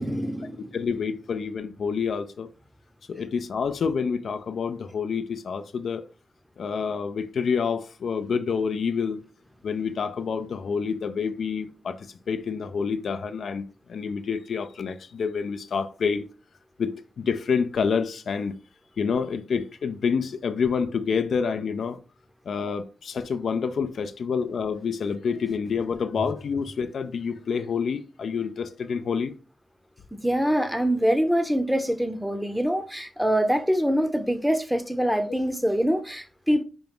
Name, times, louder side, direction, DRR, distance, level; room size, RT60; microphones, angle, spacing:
voice 1, 0.0-0.7 30.2-36.6, equal, ahead, 0.6 m, -24 dB
voice 2, 0.7-2.5 3.1-6.1 6.6-9.2 9.6-16.2 16.8-18.5 19.0-22.0 22.5-29.3, left 6 dB, 70° left, 0.3 m, -28 dB
5.0 x 2.3 x 3.4 m
cardioid pair, 55°, 0 cm